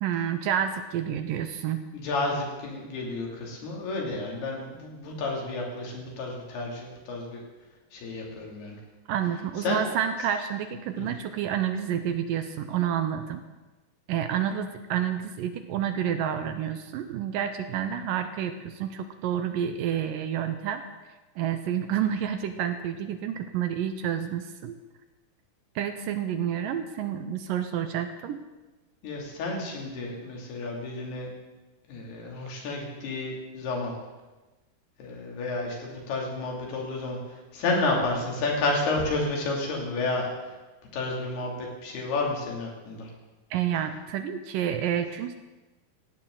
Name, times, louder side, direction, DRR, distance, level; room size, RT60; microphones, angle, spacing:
voice 1, 0.0-1.9 9.1-13.4 14.1-20.8 21.4-24.8 25.8-28.4 43.5-45.4, right 9 dB, 75° right, 8 dB, 2.2 m, -29 dB
voice 2, 1.9-7.4 7.9-8.8 9.6-9.8 11.0-11.1 29.0-31.3 31.9-33.9 35.0-40.6 40.9-43.1, left 2 dB, 90° left, -1 dB, 4.8 m, -31 dB
18.0 x 15.5 x 3.9 m, 1.1 s
omnidirectional pair, 4.4 m